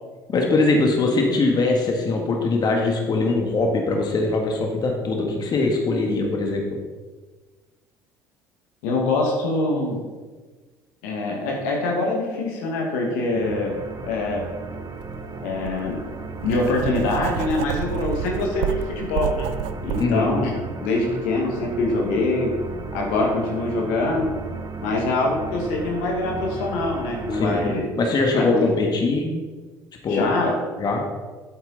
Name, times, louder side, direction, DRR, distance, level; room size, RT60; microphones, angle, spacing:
voice 1, 0.3-6.8 13.3-13.5 20.0-20.3 27.3-29.3 30.0-30.3 30.8-31.0, left 3 dB, 45° left, 1 dB, 1.8 m, -22 dB
voice 2, 8.8-10.0 11.0-13.8 14.1-14.4 15.4-16.0 16.4-19.5 19.8-20.5 20.8-22.5 22.9-24.3 24.8-27.9 28.3-28.6 30.1-30.5, left 2 dB, 75° left, 0 dB, 1.9 m, -24 dB
sound 1, 13.4-27.8, right 3 dB, 40° right, 1.1 m, -35 dB
Writing, 15.0-15.2 15.6-20.1, right 11 dB, 70° right, 0.5 m, -29 dB
9.0 x 8.1 x 4.1 m, 1.4 s
hypercardioid pair, 60°, 10 cm